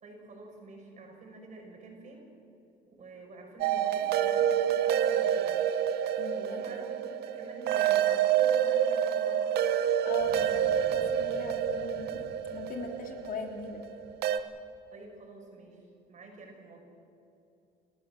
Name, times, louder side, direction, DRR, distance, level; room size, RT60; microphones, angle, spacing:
voice 1, 0.0-2.3 2.9-5.6 6.3-9.4 14.9-16.8, right 2 dB, 45° right, 2 dB, 5.9 m, -48 dB
sound 1, 3.6-14.4, right 9 dB, 70° right, 1.0 m, -28 dB
voice 2, 6.2-6.7 10.0-12.2 12.5-13.8, left 4 dB, 55° left, 3 dB, 3.1 m, -40 dB
sound 2, 10.2-14.9, left 3 dB, 90° left, 5.1 m, -52 dB
29.5 x 13.5 x 7.7 m, 2.7 s
cardioid pair, 110°, 17 cm